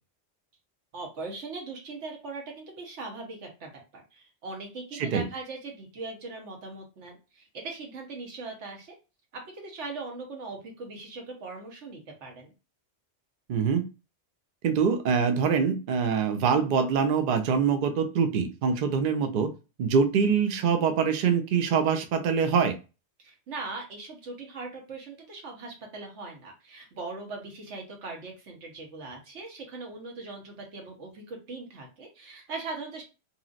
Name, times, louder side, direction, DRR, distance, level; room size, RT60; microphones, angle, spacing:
voice 1, 0.9-8.9 9.3-12.5 23.2-33.0, right 3 dB, 80° right, 2 dB, 1.3 m, -40 dB
voice 2, 13.5-13.8 14.6-19.5 19.8-22.7, right 6 dB, 55° right, 7 dB, 0.6 m, -24 dB
3.0 x 2.7 x 2.4 m, 0.30 s
omnidirectional pair, 1.2 m